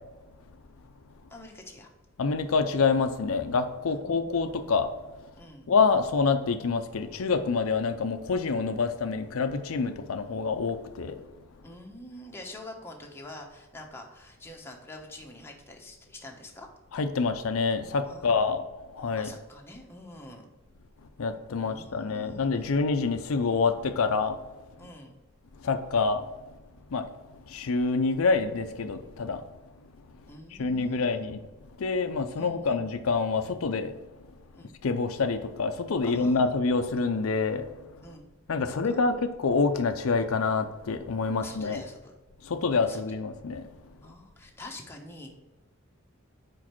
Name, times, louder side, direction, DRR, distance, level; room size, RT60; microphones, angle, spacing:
voice 1, 1.3-1.9 3.9-4.3 5.4-5.7 11.6-16.7 18.0-18.6 19.2-20.5 21.6-22.7 24.8-25.1 30.3-31.3 32.3-32.8 34.5-34.7 36.0-36.5 38.0-38.3 38.7-39.0 41.4-42.1 42.9-43.0 44.0-45.4, left 1 dB, 10° left, 1.0 m, -46 dB
voice 2, 2.2-4.9 5.7-11.2 16.9-19.3 21.2-24.4 25.6-26.3 26.9-27.1 27.3-29.4 30.5-31.4 31.8-33.9 34.8-37.9 38.5-41.8 42.4-43.7, left 4 dB, 80° left, 0.5 m, -27 dB
4.9 x 4.5 x 5.9 m
head